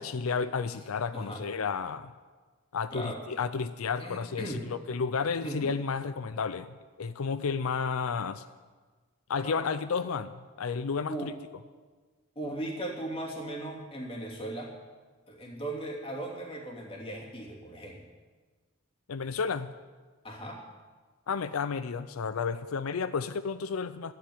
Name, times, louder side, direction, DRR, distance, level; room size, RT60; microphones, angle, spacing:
voice 1, 0.0-2.1 2.7-8.4 9.3-11.3 19.1-19.7 21.3-24.1, left 5 dB, 85° left, 13 dB, 0.5 m, -32 dB
voice 2, 2.9-3.2 4.0-4.6 5.4-5.7 9.4-9.6 11.1-11.3 12.3-14.7 15.3-18.0 20.2-20.6, right 1 dB, 25° left, -1 dB, 2.8 m, -37 dB
13.0 x 10.0 x 9.4 m, 1.4 s
head